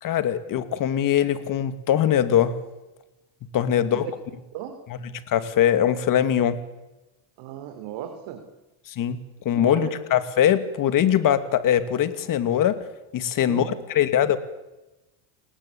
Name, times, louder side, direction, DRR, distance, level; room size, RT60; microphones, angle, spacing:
voice 1, 0.0-2.5 3.5-4.1 5.3-6.6 8.9-9.2 9.4-12.8 13.1-14.4, left 10 dB, 45° left, 11 dB, 2.6 m, -22 dB
voice 2, 7.4-8.4 9.6-10.0 13.4-14.1, right 11 dB, 65° right, 6 dB, 3.8 m, -36 dB
29.0 x 19.0 x 8.7 m, 1.0 s
supercardioid pair, 125°, 47 cm